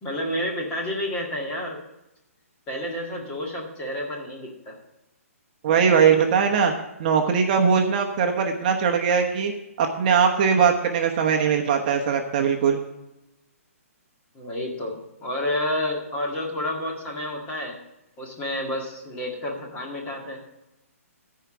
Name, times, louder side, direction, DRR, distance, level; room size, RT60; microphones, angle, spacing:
voice 1, 0.0-1.8 2.7-4.8 14.3-17.8 18.2-20.4, left 1 dB, 15° left, -1 dB, 1.8 m, -30 dB
voice 2, 5.6-6.7 7.0-9.5 9.8-12.8, right 6 dB, 35° right, 3 dB, 1.0 m, -20 dB
14.0 x 4.8 x 6.0 m, 0.94 s
hypercardioid pair, 155°, 8 cm